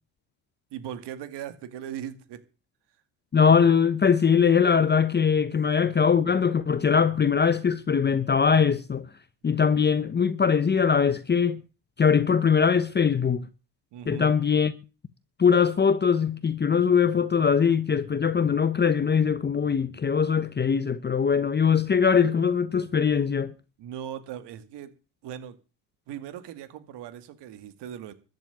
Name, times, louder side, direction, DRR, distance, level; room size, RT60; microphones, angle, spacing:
voice 1, 0.7-2.4 13.9-14.3 23.8-24.9 25.2-25.6 26.1-28.1, right 10 dB, 75° right, 2.3 m, -39 dB
voice 2, 3.3-9.1 9.4-11.6 12.0-13.4 14.1-14.7 15.4-23.5, left 6 dB, 25° left, 0.9 m, -21 dB
14.0 x 7.7 x 9.3 m
cardioid pair, 95°, 42 cm